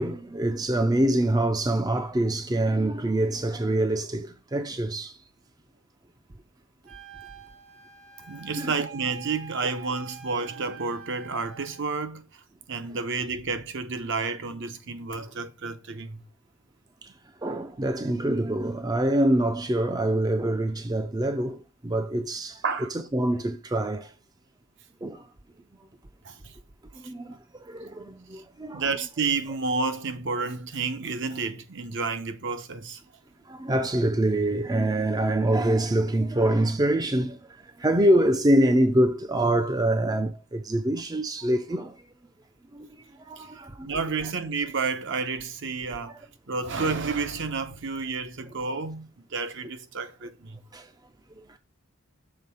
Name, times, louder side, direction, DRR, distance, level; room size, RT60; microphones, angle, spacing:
voice 1, 0.0-5.2 8.6-8.7 17.0-17.1 17.4-22.6 23.1-24.1 25.0-25.3 27.0-28.8 33.5-42.0 42.7-43.9 46.1-46.2 50.7-50.9 51.3-51.6, right 1 dB, 20° right, 0.5 m, -25 dB
Wind instrument woodwind instrument, 6.9-11.8, right 8 dB, 75° right, 2.1 m, -45 dB
voice 2, 8.3-12.4 12.7-16.2 22.6-22.9 26.2-26.5 27.0-27.4 28.3-28.4 28.7-33.0 43.4-50.6, right 4 dB, 55° right, 0.9 m, -31 dB
6.7 x 3.7 x 5.6 m
head